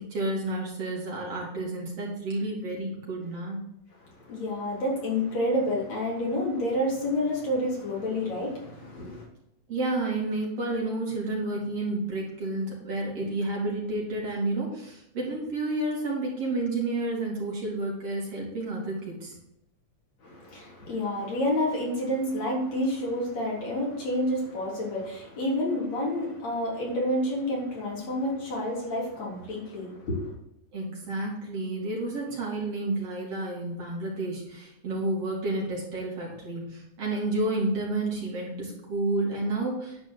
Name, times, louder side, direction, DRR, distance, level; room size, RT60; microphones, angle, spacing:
voice 1, 0.0-3.6 9.7-19.4 30.7-40.0, right 2 dB, 50° right, -3 dB, 4.1 m, -30 dB
voice 2, 4.3-9.3 20.2-30.3, left 1 dB, 60° left, -3 dB, 4.5 m, -29 dB
11.0 x 4.9 x 8.1 m, 0.81 s
omnidirectional pair, 3.5 m